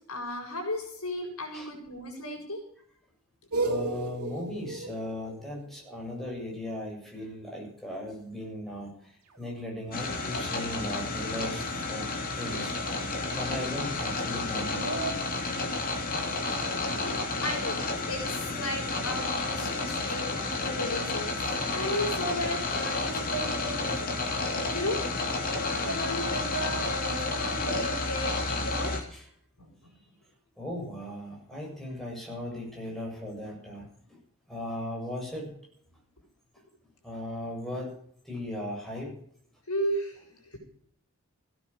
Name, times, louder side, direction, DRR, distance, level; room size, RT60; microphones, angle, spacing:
voice 1, 0.1-2.6 17.0-21.3 21.7-24.1 24.7-25.0 25.5-28.3 28.6-28.9 29.6-29.7 39.7-40.2 40.5-40.6, equal, 70° left, 1 dB, 7.2 m, -34 dB
sound 1, 3.5-6.4 9.4-15.1, right 2 dB, 85° right, 2.8 m, -37 dB
voice 2, 3.6-12.7 13.0-14.8 20.1-20.2 29.1-29.3 29.9-30.0 30.6-34.2 34.5-35.5 37.0-37.9 38.2-39.1, left 1 dB, ahead, -2 dB, 7.2 m, -37 dB
sound 2, 9.9-29.0, left 3 dB, 40° left, 2.8 m, -31 dB
17.0 x 10.5 x 6.8 m, 0.64 s
head